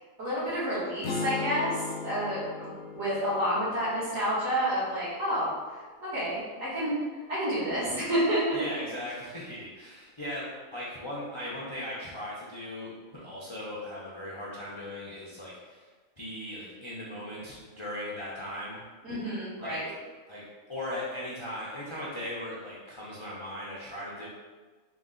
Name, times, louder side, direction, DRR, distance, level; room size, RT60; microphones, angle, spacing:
voice 1, 0.2-5.5 6.0-6.9 7.3-8.5 19.0-19.9, equal, 65° right, -10 dB, 2.0 m, -29 dB
sound 1, 1.0-5.2, left 5 dB, 65° left, 0.7 m, -38 dB
voice 2, 8.5-15.8 16.2-18.8 19.6-19.8 20.3-24.3, left 1 dB, 40° left, -7 dB, 0.4 m, -38 dB
4.0 x 2.3 x 3.7 m, 1.4 s
omnidirectional pair, 1.4 m